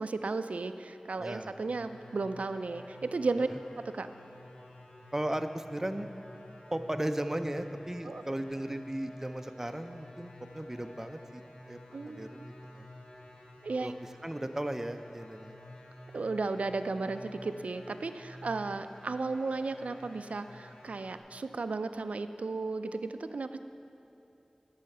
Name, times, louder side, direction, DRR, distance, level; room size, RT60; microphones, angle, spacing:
voice 1, 0.0-3.5 3.9-4.1 8.0-8.2 11.9-12.3 13.6-13.9 16.1-23.6, right 3 dB, 90° right, 10 dB, 0.3 m, -34 dB
voice 2, 1.2-1.5 5.1-6.1 6.7-11.4 11.7-12.9 13.8-13.9 14.2-15.6, right 1 dB, 20° right, 7 dB, 0.5 m, -36 dB
sound 1, 1.6-21.2, left 1 dB, 75° left, 1.5 m, -51 dB
11.5 x 5.6 x 6.5 m, 2.9 s
wide cardioid pair, 60°, 2 cm